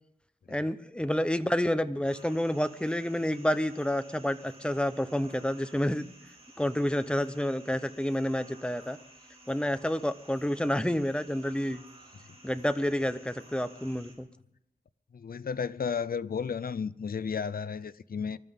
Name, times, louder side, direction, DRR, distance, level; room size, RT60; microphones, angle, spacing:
voice 1, 0.5-6.1 6.6-9.0 9.5-11.8 12.4-14.3, left 1 dB, 5° left, 0.8 m, -29 dB
sound 1, 2.0-14.2, right 1 dB, 40° right, 4.5 m, -55 dB
voice 2, 15.1-18.4, left 6 dB, 70° left, 0.5 m, -33 dB
25.0 x 13.0 x 3.7 m
wide cardioid pair, 85°, 16 cm